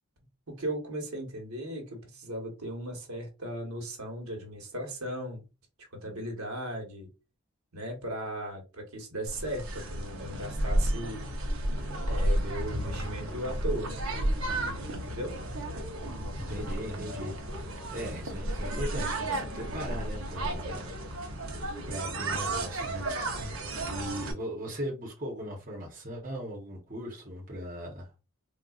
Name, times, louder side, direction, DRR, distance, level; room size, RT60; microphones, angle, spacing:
voice 1, 0.5-5.4 5.9-7.1 7.7-11.3 12.1-14.0 14.9-15.4, right 1 dB, 90° right, 1.2 m, -37 dB
sound 1, 9.3-24.3, right 1 dB, 70° right, 0.8 m, -32 dB
voice 2, 16.3-17.4 17.9-20.9 21.9-28.1, equal, 40° right, 1.0 m, -38 dB
3.8 x 2.3 x 2.4 m
head